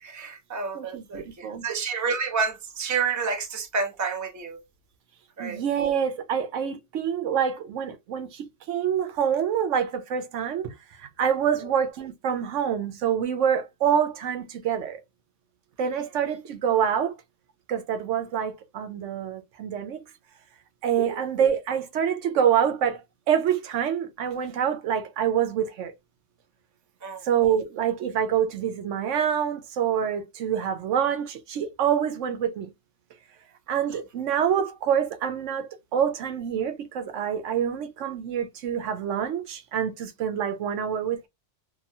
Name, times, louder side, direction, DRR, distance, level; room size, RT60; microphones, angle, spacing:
voice 1, 0.0-4.6 5.4-5.6 21.1-21.2 27.0-27.2, right 5 dB, 20° right, 0.5 m, -29 dB
voice 2, 0.7-1.6 5.4-15.0 15.8-17.1 17.7-20.0 20.8-25.9 27.2-32.7 33.7-41.3, right 8 dB, 85° right, 1.0 m, -26 dB
2.9 x 2.3 x 2.6 m
omnidirectional pair, 1.2 m